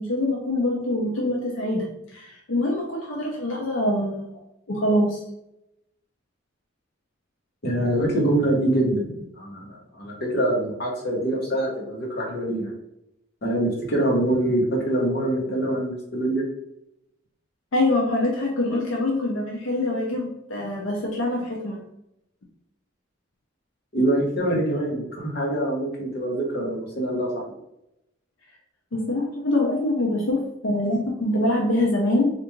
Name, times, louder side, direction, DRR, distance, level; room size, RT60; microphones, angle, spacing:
voice 1, 0.0-4.3 4.7-5.2 17.7-21.8 28.9-32.3, left 1 dB, 85° left, -1 dB, 0.6 m, -24 dB
voice 2, 7.6-12.7 13.4-16.4 23.9-27.3, right 1 dB, 55° left, -3 dB, 1.0 m, -24 dB
3.3 x 2.5 x 3.0 m, 0.81 s
head